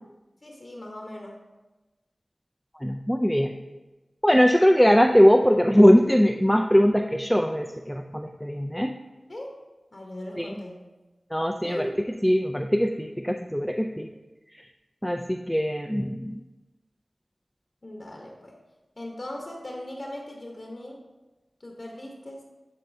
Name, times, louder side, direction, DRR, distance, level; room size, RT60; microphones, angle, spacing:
voice 1, 0.4-1.4 9.3-9.6 9.9-10.8 11.6-12.0 17.8-18.6 19.0-21.0 21.6-22.4, left 1 dB, 55° left, 0 dB, 0.9 m, -38 dB
voice 2, 2.8-3.5 4.2-8.9 10.4-10.5 11.3-11.8 12.2-14.1 15.0-16.4, equal, 5° left, 4 dB, 0.3 m, -21 dB
10.0 x 4.3 x 2.7 m, 1.1 s
cardioid pair, 40°, 0 cm